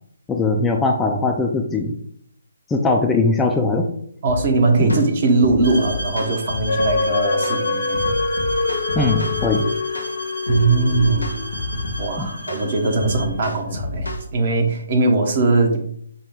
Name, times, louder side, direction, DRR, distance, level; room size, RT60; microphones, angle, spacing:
voice 1, 0.3-2.0 2.7-3.9 4.8-5.0 9.0-9.7 12.2-12.3, left 3 dB, 10° left, 2 dB, 0.4 m, -20 dB
voice 2, 4.2-8.0 10.5-11.3 12.0-15.8, right 3 dB, 45° right, 3 dB, 1.0 m, -20 dB
sound 1, 4.3-4.5 4.9-5.1 5.4-7.0 7.4-7.6 7.9-9.5 9.9-10.1 10.5-12.1 12.5-12.6 13.0-14.2, left 2 dB, 85° left, 1.1 m, -29 dB
sound 2, 5.6-13.4, right 1 dB, 60° right, 2.0 m, -34 dB
dying pixel, 6.7-12.4 12.9-13.0, left 3 dB, 55° left, 0.6 m, -24 dB
5.2 x 2.2 x 4.6 m, 0.66 s
figure-of-eight pair, 140°, 0 cm